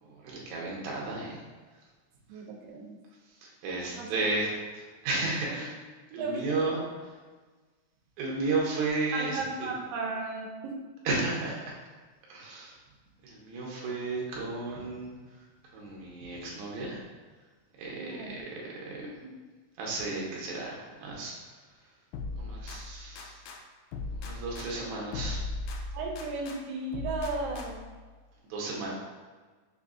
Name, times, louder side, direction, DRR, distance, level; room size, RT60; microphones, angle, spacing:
voice 1, 0.0-1.4 3.4-5.7 6.1-6.8 8.2-9.7 11.1-11.8 12.3-12.7 13.2-15.1 15.7-17.0 17.8-18.4 18.8-19.0 19.8-21.3 22.4-23.3 24.2-25.4 28.5-28.9, right 3 dB, 70° right, -3 dB, 1.9 m, -33 dB
voice 2, 2.3-3.0 3.9-4.1 5.5-5.6 6.1-6.4 9.1-10.8 17.9-18.4 19.0-19.4 25.9-27.9, right 3 dB, 90° right, 0 dB, 2.3 m, -35 dB
sound 1, 22.1-23.6 23.9-26.6 26.9-28.0, left 3 dB, 90° left, 1.6 m, -38 dB
6.1 x 2.5 x 2.4 m, 1.3 s
omnidirectional pair, 3.9 m